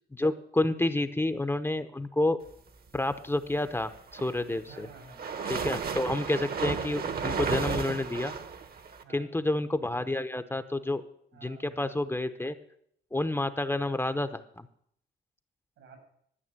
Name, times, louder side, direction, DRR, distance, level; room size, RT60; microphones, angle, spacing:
voice 1, 0.1-2.4 2.9-4.9 5.5-8.3 9.1-11.0 11.4-12.6 13.1-14.7, left 2 dB, 10° left, 9 dB, 0.7 m, -29 dB
sound 1, 3.9-9.0, right 6 dB, 50° right, 1.2 m, -33 dB
voice 2, 4.5-5.3 9.0-9.3 11.3-12.0 15.8-16.0, right 3 dB, 90° right, 3 dB, 6.9 m, -52 dB
12.5 x 6.0 x 8.7 m, 0.70 s
cardioid pair, 90°, 20 cm